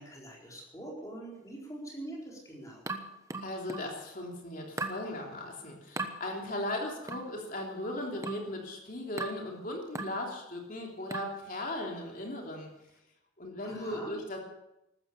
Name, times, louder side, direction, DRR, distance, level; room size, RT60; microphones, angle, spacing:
voice 1, 0.0-2.8 13.6-14.2, right 1 dB, 15° left, -3 dB, 4.4 m, -44 dB
sound 1, 2.9-4.0 4.8-5.1 6.0-6.2 7.1-7.3 8.2-8.5 9.2-9.5 10.0-10.2 11.1-11.4, right 3 dB, 15° right, 1.1 m, -37 dB
voice 2, 3.4-12.7 13.4-14.4, left 1 dB, 45° left, 0 dB, 3.2 m, -37 dB
15.0 x 13.0 x 7.0 m, 0.89 s
head